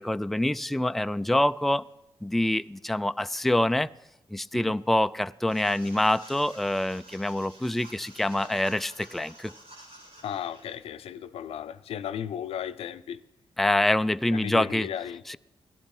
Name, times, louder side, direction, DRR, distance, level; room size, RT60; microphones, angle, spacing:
voice 1, 0.0-1.9 2.2-3.9 4.3-9.5 13.6-14.9 15.3-15.4, left 1 dB, ahead, 0.4 m, -26 dB
sound 1, 5.5-10.7, right 1 dB, 85° right, 6.0 m, -49 dB
voice 2, 10.2-13.2 14.3-15.4, left 9 dB, 85° left, 0.6 m, -35 dB
17.0 x 11.5 x 4.4 m
cardioid pair, 65°, 10 cm